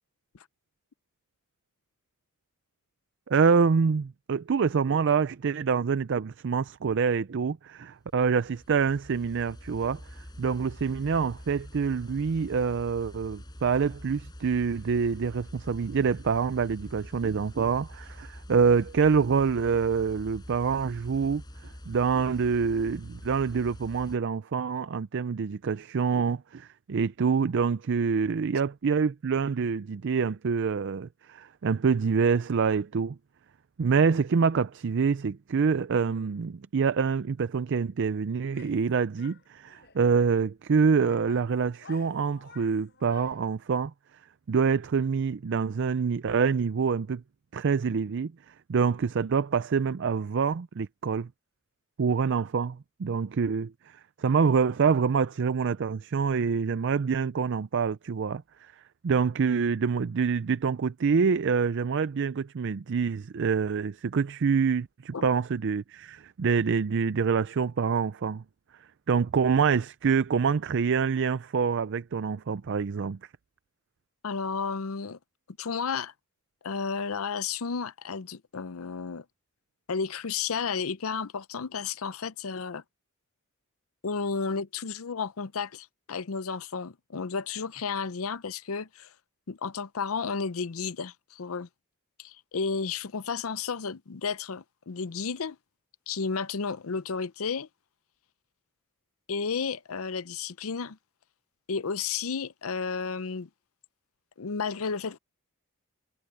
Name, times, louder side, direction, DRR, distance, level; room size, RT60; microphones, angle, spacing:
voice 1, 3.3-21.4 21.9-33.2 33.8-43.9 44.5-47.2 47.5-48.3 48.7-51.3 52.0-58.7 59.0-68.4 69.1-73.2, right 5 dB, 55° right, 0.4 m, -26 dB
sound 1, 8.1-24.2, equal, 20° left, 5.4 m, -45 dB
Female speech woman speaking / Yell, 38.5-38.9 39.2-40.0 40.7-43.5, left 5 dB, 50° left, 7.5 m, -52 dB
voice 2, 74.2-75.2 75.6-76.1 76.6-79.2 79.9-82.8 84.0-89.1 89.5-91.7 92.2-95.6 96.1-97.7 99.3-101.0 101.7-103.5 104.4-105.2, left 5 dB, 70° left, 0.6 m, -32 dB
head